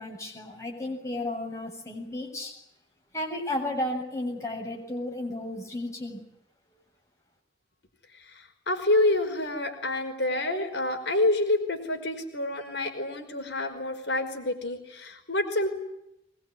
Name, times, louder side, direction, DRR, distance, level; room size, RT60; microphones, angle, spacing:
voice 1, 0.0-2.5 3.1-6.2, left 1 dB, 15° left, 0 dB, 7.1 m, -33 dB
voice 2, 8.1-15.7, left 2 dB, 75° left, 4 dB, 5.1 m, -28 dB
22.5 x 22.5 x 9.9 m, 0.82 s
head